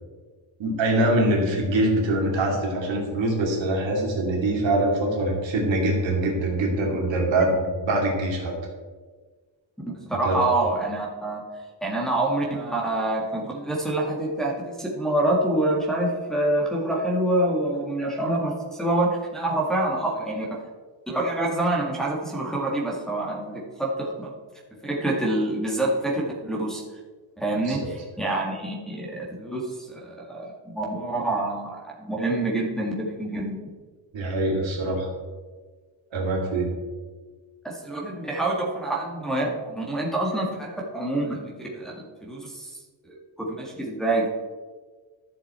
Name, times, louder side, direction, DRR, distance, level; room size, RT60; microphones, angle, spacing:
voice 1, 0.6-8.5 10.2-10.4 27.7-27.8 34.1-35.1 36.1-36.7, right 1 dB, 75° right, 0 dB, 2.6 m, -24 dB
voice 2, 9.8-11.4 11.8-20.5 21.1-24.3 24.8-26.8 27.4-33.6 37.6-42.7 43.0-44.3, right 1 dB, ahead, -5 dB, 1.9 m, -26 dB
12.0 x 6.8 x 4.3 m, 1.4 s
cardioid pair, 130°, 46 cm